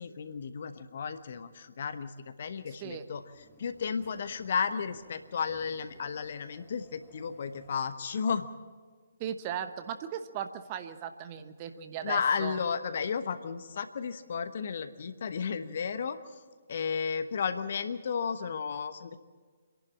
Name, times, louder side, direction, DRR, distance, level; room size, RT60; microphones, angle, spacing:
voice 1, 0.0-2.1 2.4-3.2 3.6-8.5 12.0-16.2 16.7-19.2, left 6 dB, 45° left, 11 dB, 1.1 m, -33 dB
voice 2, 2.7-3.0 9.2-12.6, right 9 dB, 25° right, 9 dB, 1.0 m, -37 dB
sound 1, 2.9-7.9, left 2 dB, 10° left, 2.3 m, -61 dB
27.0 x 11.5 x 8.7 m, 1.5 s
figure-of-eight pair, 135°, 0 cm